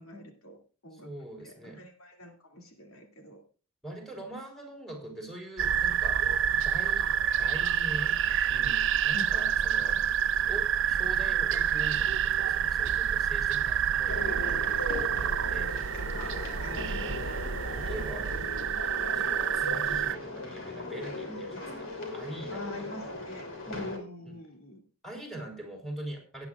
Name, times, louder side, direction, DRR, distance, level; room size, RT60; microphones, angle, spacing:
voice 1, 0.0-1.1 1.4-3.4 9.1-9.8 16.6-17.9 21.3-22.0 22.5-24.8, left 1 dB, 75° left, 4 dB, 2.6 m, -46 dB
voice 2, 0.9-1.8 3.8-6.3 6.6-7.1 7.4-8.2 8.5-10.1 10.5-15.7 16.6-17.2 17.7-18.5 19.1-22.9 24.2-24.4 25.0-26.5, right 1 dB, ahead, 1 dB, 3.2 m, -43 dB
sound 1, 5.6-20.2, right 9 dB, 60° right, 0.5 m, -28 dB
sound 2, 14.1-24.0, left 2 dB, 60° left, 3.2 m, -38 dB
18.0 x 9.7 x 2.4 m, 0.35 s
head